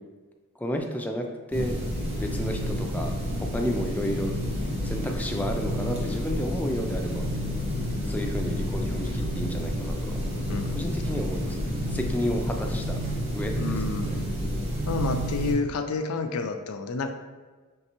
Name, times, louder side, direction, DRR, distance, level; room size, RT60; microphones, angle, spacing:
voice 1, 0.6-1.8 2.2-4.3 4.8-7.3 8.1-10.2 10.7-13.0 13.3-13.8, equal, 5° left, 2 dB, 0.3 m, -32 dB
sound 1, 1.5-15.5, equal, 30° right, 1.1 m, -29 dB
voice 2, 10.3-10.7 13.5-14.3 14.9-17.1, left 4 dB, 85° left, 7 dB, 0.4 m, -30 dB
5.4 x 3.2 x 2.9 m, 1.4 s
head